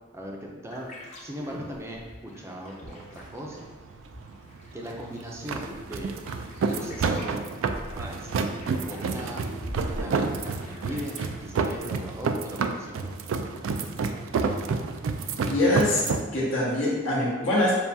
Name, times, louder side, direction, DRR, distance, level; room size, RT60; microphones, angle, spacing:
voice 1, 0.1-0.9 1.2-3.7 4.7-6.1 6.7-7.4 7.9-8.4 8.8-9.4 9.8-13.1, equal, 15° right, -1 dB, 0.5 m, -39 dB
sound 1, 0.7-12.2, left 1 dB, 35° left, 0.9 m, -44 dB
sound 2, 2.9-16.3, right 4 dB, 75° right, 0.3 m, -30 dB
voice 2, 15.4-16.0 16.3-17.7, left 1 dB, 75° left, -7 dB, 1.5 m, -23 dB
6.9 x 2.3 x 2.7 m, 1.3 s
head